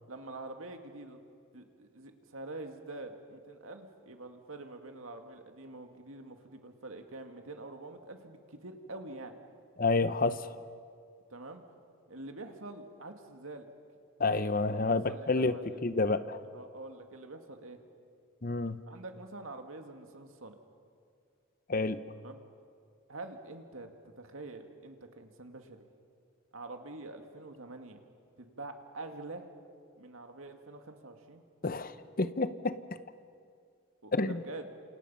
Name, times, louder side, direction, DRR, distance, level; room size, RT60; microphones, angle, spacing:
voice 1, 0.1-1.2 1.5-9.4 11.3-11.6 12.1-13.7 14.7-15.8 16.5-17.8 18.9-20.5 22.1-22.4 23.1-25.8 26.5-28.0 28.4-29.5 30.0-31.4 34.0-34.7, right 2 dB, 80° right, 5 dB, 2.1 m, -46 dB
voice 2, 9.8-10.6 14.2-15.5 15.8-16.4 18.4-18.8 21.7-22.0 31.6-32.8 34.1-34.4, left 3 dB, 40° left, 12 dB, 0.9 m, -29 dB
28.5 x 28.0 x 5.7 m, 2.3 s
head